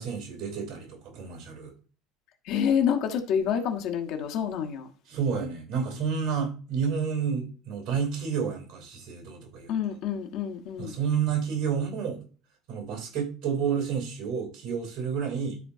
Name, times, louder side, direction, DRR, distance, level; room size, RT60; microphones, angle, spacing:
voice 1, 0.0-1.7 5.1-9.7 10.8-12.2 12.7-15.6, right 6 dB, 55° right, 3.3 m, -30 dB
voice 2, 2.4-4.9 9.7-11.0, left 8 dB, 55° left, 1.6 m, -28 dB
13.0 x 4.4 x 2.7 m
figure-of-eight pair, 65°, 0 cm